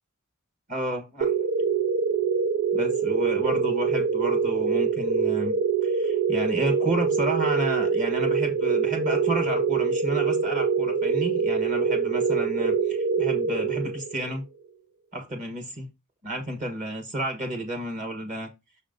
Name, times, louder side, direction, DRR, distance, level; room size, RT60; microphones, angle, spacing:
voice 1, 0.7-1.3 2.7-5.5 5.8-14.4 15.1-15.9 16.2-18.5, right 1 dB, 35° right, 4 dB, 1.4 m, -31 dB
sound 1, 1.2-14.3, right 6 dB, 80° right, 0.5 m, -24 dB
6.3 x 3.1 x 5.1 m, 0.23 s
head